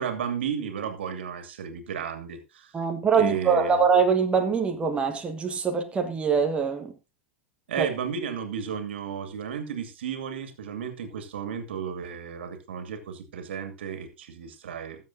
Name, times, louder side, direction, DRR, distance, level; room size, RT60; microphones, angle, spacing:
voice 1, 0.0-2.7 3.1-3.8 7.7-15.0, right 7 dB, 60° right, 2.4 m, -33 dB
voice 2, 2.7-6.9 7.8-7.9, right 6 dB, 15° right, 1.5 m, -23 dB
20.5 x 7.3 x 2.7 m
figure-of-eight pair, 95°, 7 cm